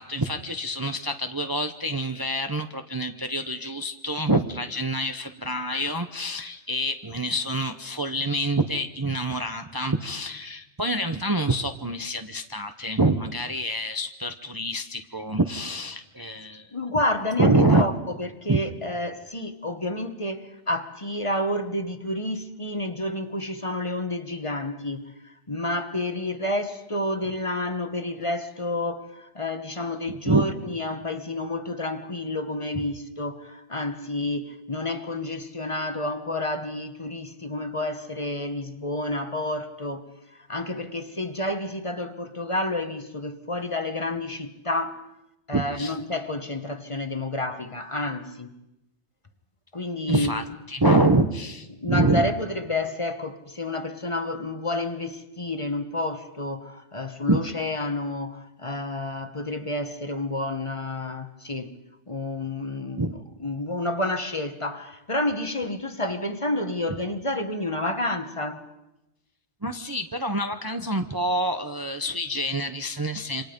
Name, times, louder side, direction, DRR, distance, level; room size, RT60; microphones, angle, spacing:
voice 1, 0.0-16.7 17.4-17.8 18.5-18.6 30.3-30.5 32.7-32.8 45.5-45.9 50.1-52.2 57.3-57.5 63.0-63.2 69.6-73.4, right 2 dB, 20° right, 0.8 m, -26 dB
voice 2, 16.7-45.0 45.5-48.5 49.7-50.4 51.7-61.7 62.1-68.6, left 1 dB, 30° left, 1.3 m, -30 dB
27.5 x 25.5 x 5.3 m
omnidirectional pair, 1.2 m